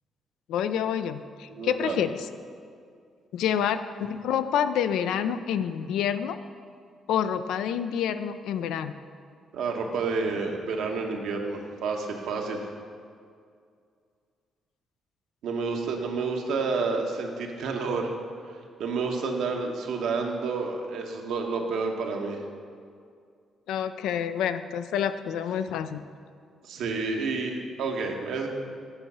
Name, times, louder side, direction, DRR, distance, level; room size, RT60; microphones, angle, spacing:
voice 1, 0.5-2.2 3.3-6.4 7.1-8.9 23.7-26.0, left 8 dB, 85° left, 11 dB, 0.4 m, -28 dB
voice 2, 1.5-2.0 9.5-12.6 15.4-18.1 18.8-22.4 26.7-28.5, right 4 dB, 80° right, 2 dB, 1.0 m, -29 dB
8.9 x 4.7 x 5.4 m, 2.2 s
cardioid pair, 90°, 0 cm